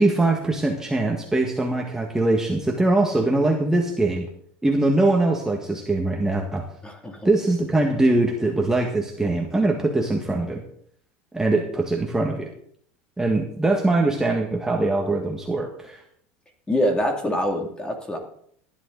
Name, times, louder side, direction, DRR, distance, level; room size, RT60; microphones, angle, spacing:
voice 1, 0.0-4.3 4.6-6.7 7.2-10.6 11.3-12.5 13.2-16.0, right 2 dB, 10° right, 0 dB, 1.7 m, -22 dB
voice 2, 6.8-7.3 16.7-18.2, equal, 15° left, 3 dB, 2.5 m, -25 dB
15.0 x 11.0 x 4.0 m, 0.64 s
supercardioid pair, 130°, 7 cm